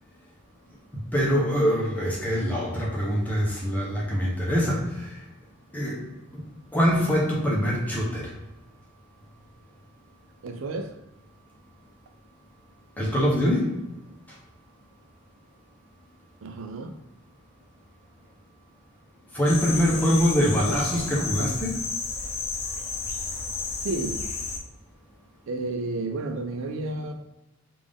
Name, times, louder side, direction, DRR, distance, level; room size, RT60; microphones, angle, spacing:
voice 1, 1.1-5.1 5.7-6.0 6.3-6.4 6.7-8.3 13.0-13.7 19.3-21.8, equal, 10° left, -4 dB, 0.8 m, -24 dB
voice 2, 10.4-11.0 16.4-17.0 23.8-24.3 25.5-27.1, right 2 dB, 70° right, 5 dB, 0.4 m, -31 dB
sound 1, 19.5-24.6, left 4 dB, 75° left, 0.6 m, -32 dB
3.6 x 2.5 x 3.4 m, 0.96 s
head